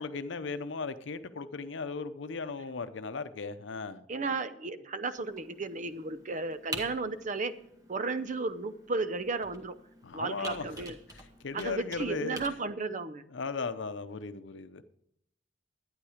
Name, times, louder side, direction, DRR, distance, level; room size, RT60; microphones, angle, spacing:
voice 1, 0.0-4.0 10.0-10.8 11.1-12.4 13.3-14.8, left 4 dB, 90° left, 12 dB, 0.7 m, -37 dB
voice 2, 4.1-7.6 7.9-9.8 10.1-11.0 11.5-13.2, right 3 dB, 45° right, 13 dB, 0.6 m, -34 dB
Computer keyboard, 5.1-12.5, right 1 dB, 20° right, 1.4 m, -47 dB
11.5 x 9.6 x 5.0 m, 0.77 s
head